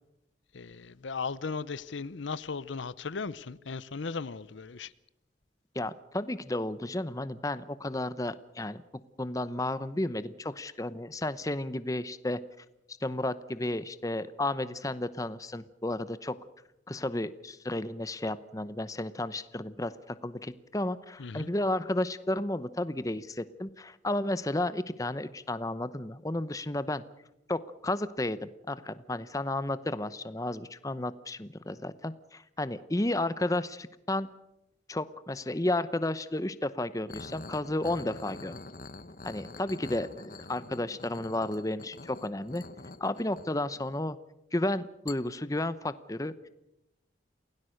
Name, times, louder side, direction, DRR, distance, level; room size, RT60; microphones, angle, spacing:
voice 1, 0.5-4.9 21.2-21.5, left 4 dB, 85° left, 0.7 m, -37 dB
voice 2, 5.7-8.8 9.2-12.4 13.0-16.4 16.9-27.0 27.5-34.3 34.9-38.5 39.2-42.6 43.0-44.2 44.5-46.3, left 1 dB, 20° left, 0.8 m, -32 dB
sound 1, 37.1-44.1 45.1-45.2, left 3 dB, 45° left, 1.0 m, -46 dB
28.0 x 17.5 x 6.5 m
head